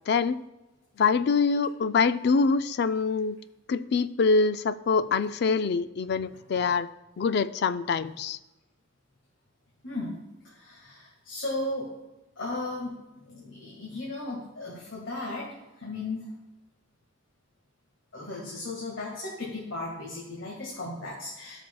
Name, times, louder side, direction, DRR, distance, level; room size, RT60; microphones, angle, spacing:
voice 1, 0.1-0.4 1.0-3.4 3.7-6.9 7.2-8.4, left 4 dB, 55° left, 13 dB, 0.4 m, -25 dB
voice 2, 10.4-11.9 12.4-15.5 15.8-16.3 18.1-21.6, left 2 dB, 75° left, -3 dB, 1.8 m, -36 dB
17.5 x 6.1 x 2.3 m, 1.0 s
head